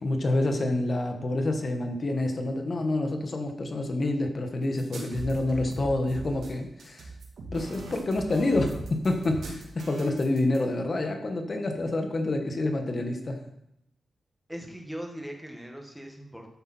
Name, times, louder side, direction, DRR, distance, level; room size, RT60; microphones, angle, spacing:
voice 1, 0.0-7.1 7.5-13.4, left 2 dB, 40° left, 4 dB, 1.5 m, -28 dB
sound 1, 4.8-10.6, right 2 dB, 85° right, 3.2 m, -40 dB
voice 2, 14.5-16.5, equal, ahead, 1 dB, 1.8 m, -40 dB
13.0 x 8.4 x 4.5 m, 0.81 s
wide cardioid pair, 125°, 0 cm